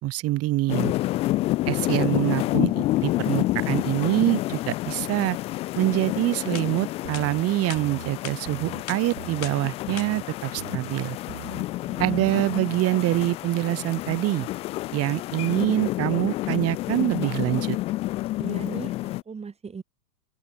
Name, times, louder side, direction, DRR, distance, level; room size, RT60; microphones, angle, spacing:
voice 1, 0.0-0.9 1.7-5.4 5.8-11.2 12.0-14.5 14.9-17.8, right 17 dB, 30° right, 2.3 m, -25 dB
sound 1, 0.7-19.2, left 17 dB, 15° left, 0.4 m, -29 dB
voice 2, 2.4-2.7 11.8-12.2 18.4-19.8, right 5 dB, 10° right, 7.8 m, -38 dB
sound 2, 6.5-6.7 7.1-7.3 7.7-7.8 8.2-8.4 8.9-9.0 9.4-9.6 10.0-10.1, left 17 dB, 55° left, 3.0 m, -37 dB
sound 3, 7.0-7.4 7.7-8.1 8.5-8.8 9.2-9.5 9.9-10.2 10.6-10.9 11.3-11.6 12.0-12.4, right 17 dB, 55° right, 1.8 m, -40 dB
open air
hypercardioid pair, 135°, 49 cm